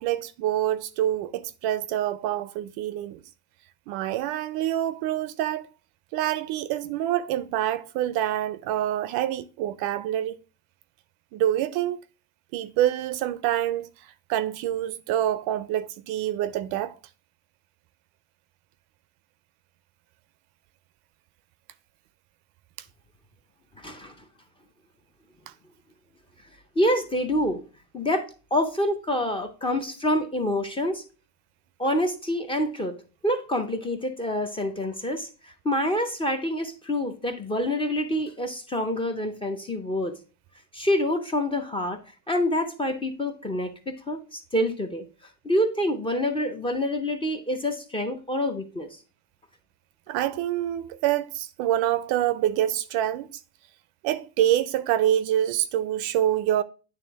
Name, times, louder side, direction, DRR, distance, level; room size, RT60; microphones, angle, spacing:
voice 1, 0.0-3.2 3.9-5.7 6.1-10.4 11.3-12.0 12.5-17.0 25.5-25.6 50.1-53.3 54.0-56.6, right 12 dB, 50° right, 0.5 m, -26 dB
voice 2, 23.8-24.2 26.8-27.6 27.9-31.0 31.8-40.2 40.7-42.0 42.3-45.0 45.4-49.0, left 1 dB, 10° left, 0.5 m, -27 dB
9.1 x 3.4 x 3.4 m
supercardioid pair, 125°, 47 cm